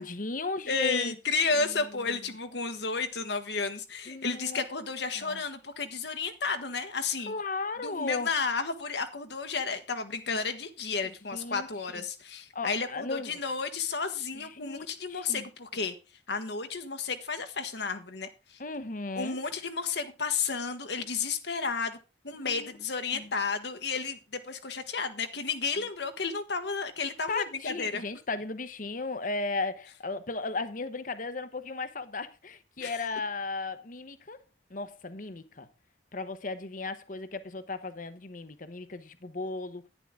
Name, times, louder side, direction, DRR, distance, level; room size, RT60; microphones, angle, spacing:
voice 1, 0.0-1.1 1.5-2.2 4.1-4.7 5.2-5.4 7.3-8.3 11.0-11.7 11.9-12.0 12.5-13.4 14.4-15.5 18.6-19.4 22.4-22.7 23.1-23.3 27.3-34.4 34.7-35.7 36.1-39.9, left 3 dB, 45° left, 0.9 m, -36 dB
voice 2, 0.7-7.3 7.8-15.9 16.3-18.6 19.1-22.0 22.2-28.0 32.8-32.9, left 4 dB, 65° left, 1.3 m, -32 dB
11.0 x 10.0 x 3.7 m
head